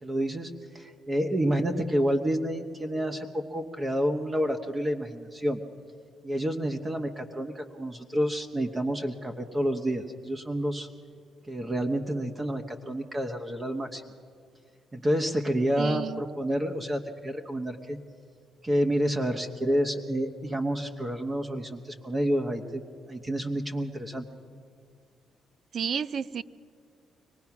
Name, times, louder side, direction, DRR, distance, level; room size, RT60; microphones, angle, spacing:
voice 1, 0.0-5.6 6.2-10.9 11.5-14.0 14.9-18.0 18.6-22.8 23.1-24.2, equal, 25° right, 4 dB, 1.1 m, -29 dB
voice 2, 15.7-16.2 25.7-26.4, right 7 dB, 55° right, 16 dB, 0.5 m, -31 dB
25.0 x 18.5 x 6.0 m, 2.2 s
cardioid pair, 90°, 0 cm